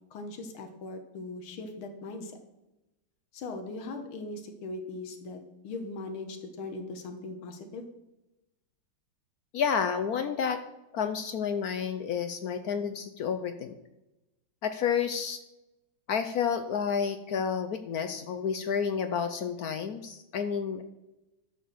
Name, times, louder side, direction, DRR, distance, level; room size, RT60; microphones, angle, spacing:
voice 1, 0.1-2.4 3.3-7.9, left 3 dB, 90° left, 5 dB, 2.0 m, -39 dB
voice 2, 9.5-10.6 10.9-13.8 14.6-15.4 16.1-20.8, left 7 dB, 70° left, 9 dB, 0.9 m, -30 dB
12.0 x 4.4 x 7.6 m, 0.97 s
omnidirectional pair, 2.3 m